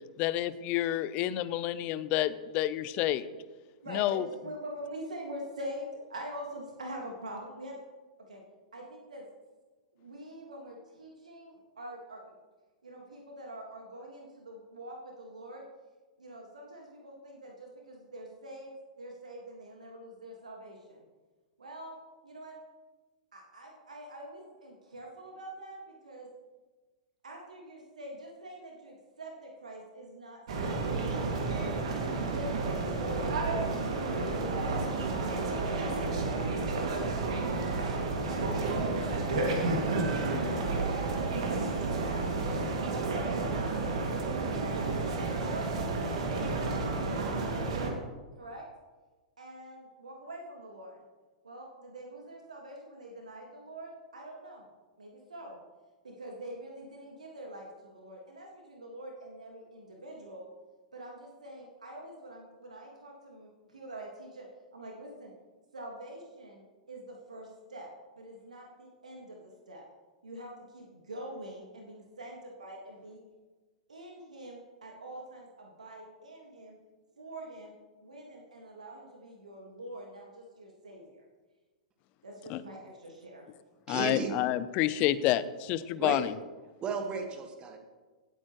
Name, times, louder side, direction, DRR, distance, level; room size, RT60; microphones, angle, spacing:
voice 1, 0.2-3.3 3.9-4.2 82.5-82.6 83.9-86.3, left 13 dB, 35° left, 0.6 m, -29 dB
voice 2, 3.8-7.8 8.3-8.4 8.7-9.2 9.9-12.2 12.8-15.6 16.2-21.0 21.6-22.0 22.2-22.5 23.3-26.3 27.2-31.3 32.0-34.7 35.1-38.0 38.3-41.6 42.0-42.3 42.8-44.6 45.1-47.4 48.4-48.7 49.4-51.0 51.4-54.7 55.0-55.6 56.0-60.5 60.9-64.5 64.7-65.3 65.7-67.9 68.2-69.8 70.2-73.2 73.9-76.7 77.2-77.7 78.0-81.2 82.2-83.5 84.0-84.1, right 1 dB, 75° right, 1.8 m, -45 dB
sound 1, 30.5-47.9, right 3 dB, 60° right, 2.2 m, -31 dB
voice 3, 83.9-84.4 86.0-86.2 86.8-87.8, right 5 dB, 25° right, 1.7 m, -34 dB
17.0 x 8.6 x 3.1 m
figure-of-eight pair, 100°, 4 cm